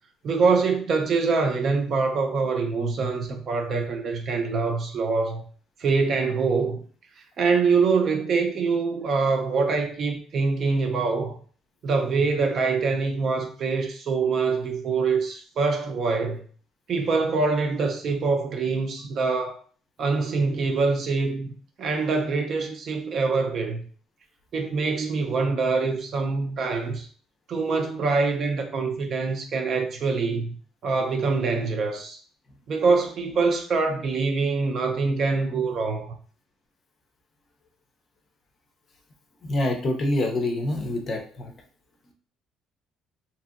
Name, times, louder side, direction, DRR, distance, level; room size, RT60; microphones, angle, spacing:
voice 1, 0.2-5.4 5.8-6.8 7.4-11.4 11.8-16.5 16.9-19.6 20.0-21.5 21.8-23.8 24.5-27.1 27.5-30.5 30.8-32.2 32.7-36.2, right 4 dB, 40° right, 0.5 m, -24 dB
voice 2, 39.4-41.5, left 1 dB, 35° left, 0.5 m, -26 dB
2.8 x 2.7 x 2.4 m
cardioid pair, 150°, 0 cm